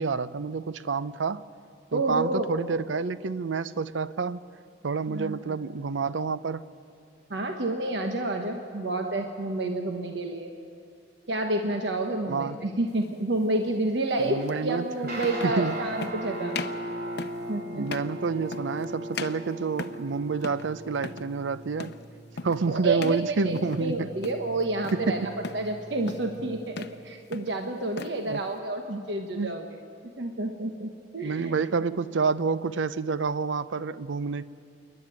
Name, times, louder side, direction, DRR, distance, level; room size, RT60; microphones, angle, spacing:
voice 1, 0.0-1.4 1.9-4.4 4.8-6.6 12.3-12.6 14.2-14.8 15.4-15.7 17.7-21.9 22.4-24.1 24.9-25.3 28.3-28.4 29.3-29.5 31.2-34.4, right 4 dB, 90° right, 15 dB, 0.6 m, -28 dB
voice 2, 1.9-2.5 5.1-5.6 7.3-10.5 11.3-16.6 17.5-17.9 22.7-29.7 30.2-31.5, right 2 dB, 70° right, 4 dB, 1.2 m, -29 dB
sound 1, 13.0-13.2 14.5-14.6 15.2-15.6 16.0-16.2 16.5-16.8 17.2-17.5 17.9-18.2 18.5-18.9 19.1-20.1 20.4-20.7 21.0-21.3 21.8-22.1 22.4-22.6 23.0-23.3 23.6-23.9 24.2-25.0 25.4-25.7 26.1-26.4 26.7-27.0 27.3-28.2, left 4 dB, 60° left, 0.7 m, -38 dB
Guitar, 15.0-26.5, right 1 dB, 50° right, 3.8 m, -39 dB
28.0 x 11.0 x 9.2 m, 2.5 s
head